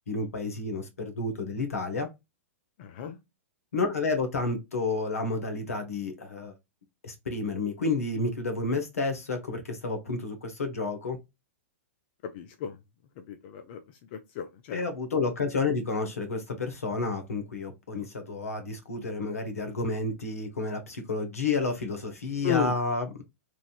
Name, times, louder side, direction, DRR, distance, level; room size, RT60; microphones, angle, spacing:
voice 1, 0.1-2.1 3.7-6.5 7.0-11.2 14.7-23.2, left 3 dB, 75° left, 1.0 m, -30 dB
voice 2, 2.8-3.2 12.3-12.8 13.3-13.8 14.4-14.8 22.4-22.7, left 9 dB, 45° left, 0.5 m, -32 dB
3.2 x 2.5 x 2.4 m
figure-of-eight pair, 110°, 8 cm